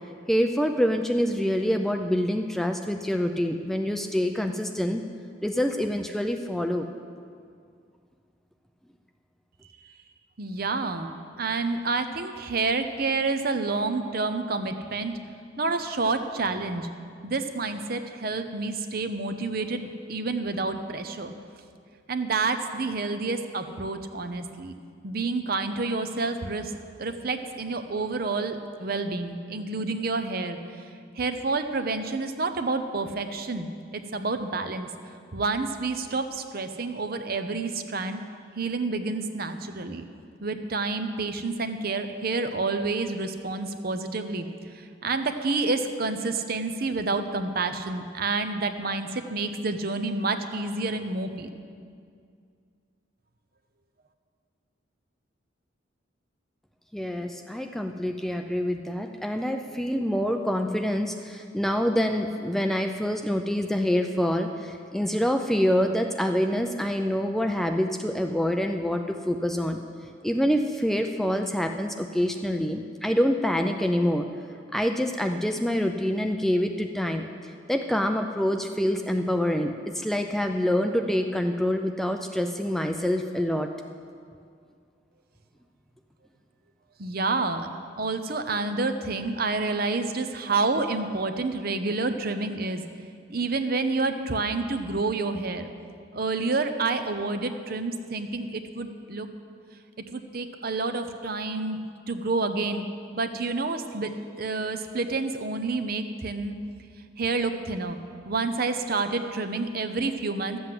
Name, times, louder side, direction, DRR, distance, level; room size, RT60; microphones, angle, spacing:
voice 1, 0.3-5.0 5.4-6.9 56.9-69.8 70.2-74.3 74.7-77.3 77.7-83.7, equal, ahead, 5 dB, 0.4 m, -26 dB
voice 2, 10.4-11.1 11.4-15.1 15.6-16.9 17.2-21.3 22.1-24.7 25.0-26.7 27.0-30.6 31.2-34.9 35.3-38.2 38.6-40.1 40.4-44.5 44.7-51.5 87.0-87.7 88.0-92.8 93.3-95.7 96.1-99.3 100.1-101.8 102.1-102.9 103.1-104.1 104.4-106.6 107.2-108.0 108.2-110.6, right 3 dB, 50° right, 8 dB, 0.8 m, -29 dB
13.0 x 7.9 x 7.7 m, 2.3 s
head